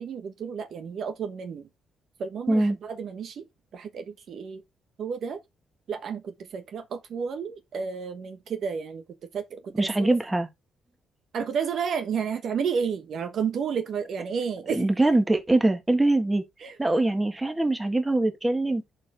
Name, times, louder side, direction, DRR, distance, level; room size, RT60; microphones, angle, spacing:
voice 1, 0.0-1.7 2.2-3.4 3.7-4.6 5.0-5.4 5.9-10.1 11.3-14.9 16.6-16.8, right 6 dB, 60° right, 1.2 m, -31 dB
voice 2, 9.8-10.5 14.7-16.4 16.8-18.8, right 2 dB, 15° right, 1.7 m, -23 dB
11.0 x 4.5 x 3.4 m
cardioid pair, 90°, 0 cm